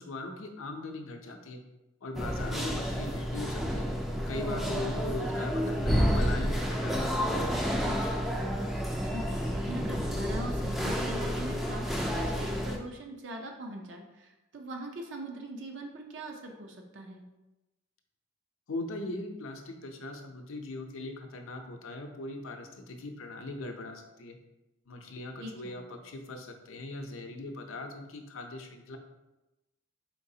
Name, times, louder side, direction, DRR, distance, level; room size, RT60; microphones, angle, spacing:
voice 1, 0.0-1.6 2.0-3.9 4.3-7.3 18.7-24.4 24.9-29.0, left 2 dB, 80° left, 5 dB, 0.6 m, -40 dB
sound 1, 2.1-12.8, equal, ahead, 0.3 m, -30 dB
voice 2, 4.3-4.7 7.8-8.3 9.0-17.2 25.4-25.8, right 2 dB, 60° right, 2 dB, 0.5 m, -42 dB
4.5 x 3.9 x 2.7 m, 1.0 s
head